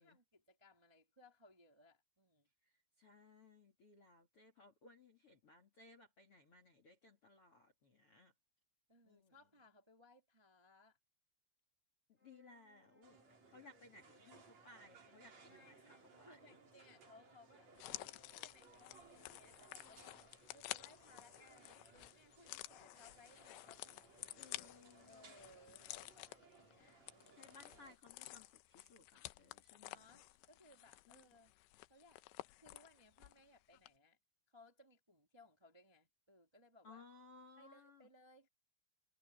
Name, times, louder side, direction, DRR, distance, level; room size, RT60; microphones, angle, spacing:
voice 1, 0.0-2.5 8.9-11.0 15.5-24.6 25.1-27.6 29.8-31.5 31.9-34.2 34.5-37.0 37.6-38.5, left 2 dB, 10° right, 1.6 m, -66 dB
voice 2, 3.0-8.3 9.1-9.3 12.1-13.2 13.5-16.6 24.3-25.3 27.4-30.0 31.1-31.2 36.8-38.1, left 3 dB, 40° left, 2.2 m, -62 dB
sound 1, 12.2-20.7, left 1 dB, 10° left, 7.9 m, -72 dB
sound 2, 13.0-28.0, right 4 dB, 35° right, 4.3 m, -65 dB
sound 3, 17.8-33.5 33.7-33.9, left 18 dB, 85° left, 2.6 m, -52 dB
omnidirectional pair, 5.8 m